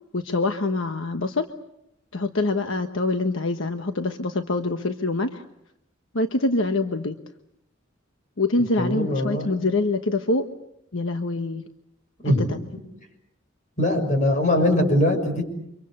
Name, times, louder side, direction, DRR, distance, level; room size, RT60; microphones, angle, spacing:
voice 1, 0.1-1.5 2.1-5.4 6.1-7.1 8.4-10.5 10.9-11.6, left 2 dB, 70° left, 6 dB, 1.2 m, -25 dB
voice 2, 8.6-9.5 12.2-12.8 13.8-15.4, left 1 dB, 40° left, 5 dB, 6.3 m, -22 dB
30.0 x 25.5 x 6.8 m, 0.80 s
head